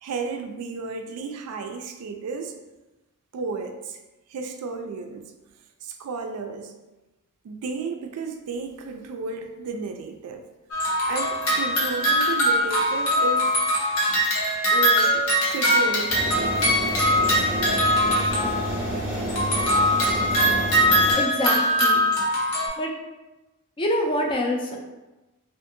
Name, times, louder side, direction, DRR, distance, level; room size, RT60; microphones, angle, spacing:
voice 1, 0.0-2.5 3.3-4.0 4.3-5.2 5.8-6.7 7.4-10.4 11.1-13.6 14.7-16.6, right 4 dB, 80° right, 6 dB, 0.3 m, -33 dB
sound 1, 10.7-18.9 19.3-22.7, equal, 70° left, 0.8 m, -22 dB
sound 2, 16.1-21.1, right 1 dB, 10° right, 0.7 m, -29 dB
voice 2, 21.2-22.0 22.8-22.9 23.8-24.8, left 1 dB, 20° left, 0 dB, 0.3 m, -25 dB
2.6 x 2.4 x 2.5 m, 1.1 s
head